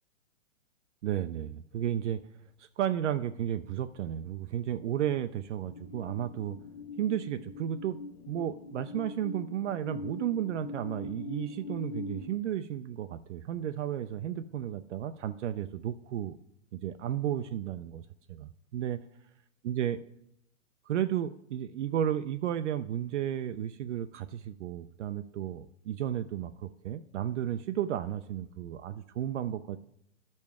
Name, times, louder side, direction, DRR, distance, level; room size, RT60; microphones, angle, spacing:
voice 1, 1.0-2.2 2.6-6.6 7.0-8.0 8.3-16.4 16.7-19.0 19.6-20.0 20.9-29.8, right 10 dB, 60° right, 10 dB, 0.5 m, -33 dB
sound 1, 5.6-12.3, left 3 dB, 35° left, 0.6 m, -43 dB
14.0 x 5.3 x 3.5 m, 0.79 s
hypercardioid pair, 155°, 40 cm